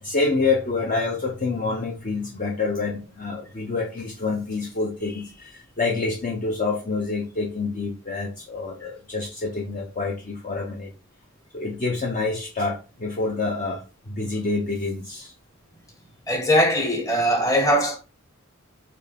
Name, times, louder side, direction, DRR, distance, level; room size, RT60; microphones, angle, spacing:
voice 1, 0.0-10.9 11.5-15.3, left 3 dB, 35° left, 0.6 m, -27 dB
voice 2, 16.3-18.0, equal, 15° left, 1.2 m, -20 dB
4.4 x 3.2 x 3.4 m
head